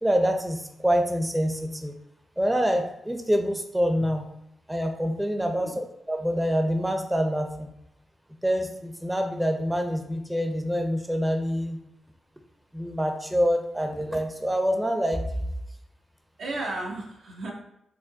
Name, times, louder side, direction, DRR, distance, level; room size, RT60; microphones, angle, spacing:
voice 1, 0.0-1.9 2.4-4.2 4.7-7.7 8.4-11.8 12.7-15.5, equal, 10° right, 5 dB, 0.6 m, -26 dB
voice 2, 5.4-5.8 16.4-17.5, right 2 dB, 80° right, -2 dB, 1.0 m, -34 dB
4.8 x 2.0 x 3.8 m, 0.82 s
cardioid pair, 65°, 0 cm